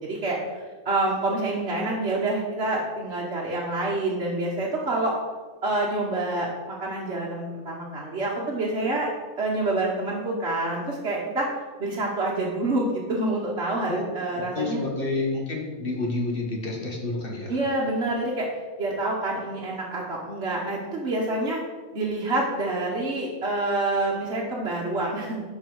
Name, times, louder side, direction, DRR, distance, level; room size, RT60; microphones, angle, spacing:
voice 1, 0.0-5.2 5.6-9.1 9.4-11.5 11.8-14.8 17.5-18.5 18.8-21.6 21.9-25.4, right 2 dB, 55° right, -4 dB, 1.5 m, -27 dB
voice 2, 14.5-17.6, left 2 dB, 40° left, -1 dB, 1.9 m, -29 dB
11.5 x 4.8 x 4.6 m, 1.4 s
omnidirectional pair, 1.4 m